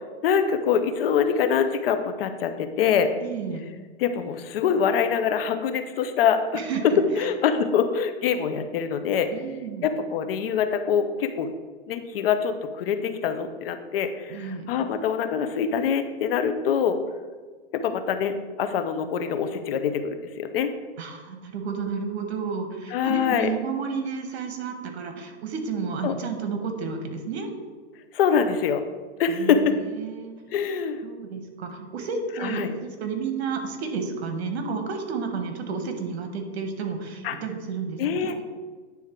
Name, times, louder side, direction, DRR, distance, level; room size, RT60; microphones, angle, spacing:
voice 1, 0.0-3.1 4.0-6.5 7.2-9.3 9.8-11.5 11.9-17.0 17.7-20.7 22.9-23.5 26.0-26.1 28.1-28.8 29.2-29.7 30.5-31.0 32.4-32.7 37.2-37.4 38.0-38.4, left 7 dB, 60° left, 8 dB, 0.7 m, -24 dB
voice 2, 3.2-3.6 6.5-7.3 9.3-9.9 14.3-14.7 21.0-27.5 29.3-30.3 31.0-38.4, right 5 dB, 70° right, 6 dB, 1.3 m, -31 dB
9.3 x 3.6 x 4.5 m, 1.5 s
hypercardioid pair, 150°, 33 cm